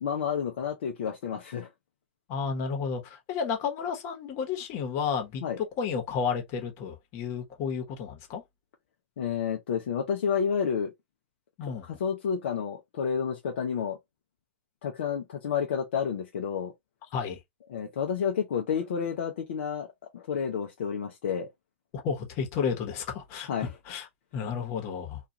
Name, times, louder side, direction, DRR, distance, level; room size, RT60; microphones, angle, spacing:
voice 1, 0.0-1.7 5.4-5.6 9.2-10.9 11.9-14.0 14.8-16.7 17.7-19.9 20.1-21.5 23.5-23.7, left 7 dB, 70° left, 0.6 m, -30 dB
voice 2, 2.3-8.4 11.6-11.9 17.1-17.4 22.0-24.1 24.3-25.2, left 6 dB, 45° left, 1.0 m, -32 dB
2.4 x 2.4 x 2.7 m
hypercardioid pair, 110°, 6 cm